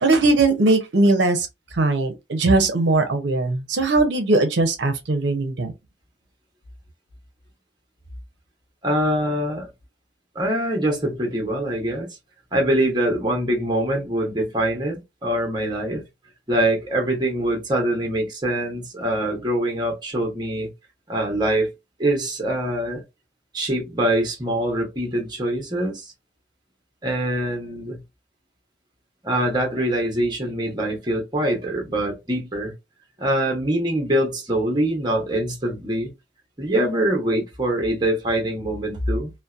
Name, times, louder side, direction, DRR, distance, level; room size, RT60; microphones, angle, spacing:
voice 1, 0.0-1.5 1.7-5.7, right 2 dB, 75° right, 0.6 m, -19 dB
voice 2, 8.8-9.7 10.3-12.1 12.5-16.0 16.5-20.7 21.1-21.7 22.0-23.0 23.5-26.1 27.0-28.0 29.2-32.7 33.2-36.1 36.6-39.3, right 1 dB, 25° right, 0.7 m, -24 dB
2.6 x 2.0 x 2.3 m
head